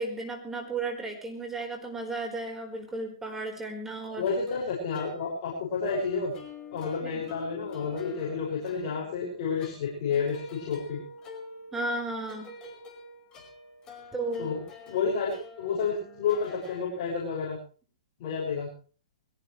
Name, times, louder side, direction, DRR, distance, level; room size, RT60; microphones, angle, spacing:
voice 1, 0.0-4.3 7.0-7.2 11.7-12.5 14.1-14.5, right 2 dB, 10° right, 2 dB, 4.6 m, -34 dB
sound 1, 4.1-17.1, left 2 dB, 20° left, 5.4 m, -47 dB
voice 2, 4.2-6.3 6.7-11.0 14.4-14.6 14.9-17.6 18.2-18.7, left 5 dB, 45° left, -4 dB, 6.8 m, -30 dB
22.0 x 17.5 x 3.3 m, 0.39 s
hypercardioid pair, 135°, 4 cm